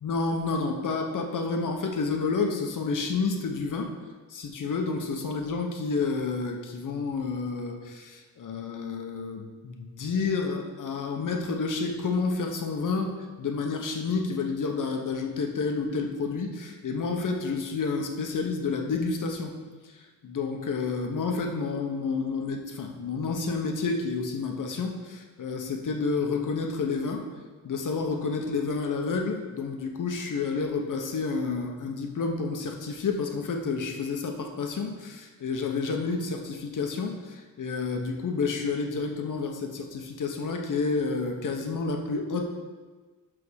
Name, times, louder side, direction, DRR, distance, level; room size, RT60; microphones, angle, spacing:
voice 1, 0.0-3.9 4.3-19.5 19.8-27.2 27.6-42.4, left 4 dB, 60° left, 3 dB, 1.1 m, -30 dB
11.0 x 3.7 x 6.3 m, 1.3 s
wide cardioid pair, 180°, 36 cm